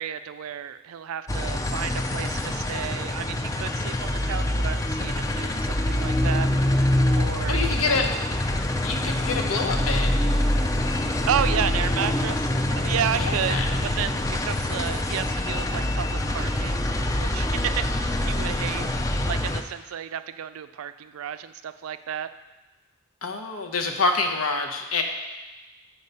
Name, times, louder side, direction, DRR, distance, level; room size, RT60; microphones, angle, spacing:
voice 1, 0.0-6.5 7.1-7.6 7.9-8.0 11.3-16.8 17.2-18.9 19.3-22.3, right 9 dB, 75° right, 12 dB, 0.4 m, -32 dB
sound 1, 1.3-19.6, left 1 dB, 15° left, 0.4 m, -25 dB
voice 2, 7.5-8.1 8.8-10.1 13.2-13.7 23.2-25.0, left 3 dB, 75° left, 3 dB, 0.9 m, -26 dB
8.0 x 4.7 x 5.4 m, 1.2 s
head